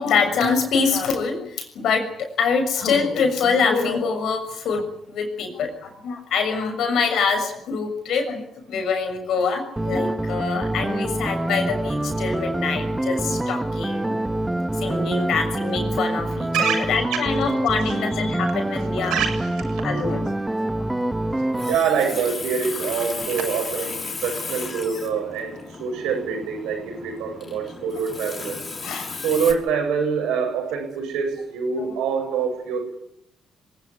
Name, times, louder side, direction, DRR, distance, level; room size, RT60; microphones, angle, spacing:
voice 1, 0.0-14.1 14.8-19.2 19.8-20.2 20.6-21.1 28.8-29.1 31.9-32.0, left 5 dB, 65° left, 7 dB, 6.6 m, -25 dB
sound 1, 9.8-21.8, right 1 dB, 15° right, 2.0 m, -26 dB
voice 2, 19.1-19.6 21.7-28.9 29.2-32.9, right 6 dB, 70° right, 4 dB, 7.8 m, -25 dB
Water tap faucet, 21.3-29.5, left 4 dB, 40° left, 5.6 m, -35 dB
26.5 x 18.0 x 9.7 m, 0.75 s
hypercardioid pair, 45°, 0 cm